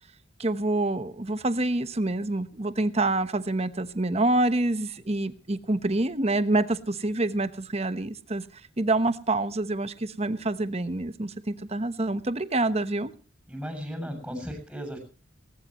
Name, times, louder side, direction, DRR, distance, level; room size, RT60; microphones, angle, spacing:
voice 1, 0.4-13.1, right 2 dB, 30° right, 12 dB, 1.1 m, -27 dB
voice 2, 13.5-15.0, equal, 5° right, 5 dB, 7.3 m, -35 dB
19.5 x 19.0 x 3.1 m, 0.37 s
head